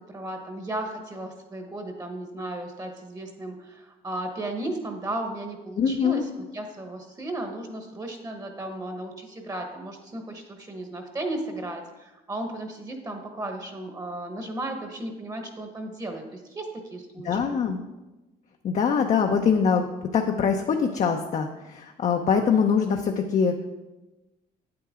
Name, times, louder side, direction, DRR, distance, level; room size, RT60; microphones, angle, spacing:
voice 1, 0.1-17.6, right 1 dB, 20° right, 4 dB, 1.2 m, -35 dB
voice 2, 5.8-6.2 17.2-17.8 18.6-19.9 20.1-23.5, left 6 dB, 45° left, 3 dB, 0.7 m, -23 dB
8.8 x 8.7 x 3.7 m, 1.1 s
cardioid pair, 110°, 17 cm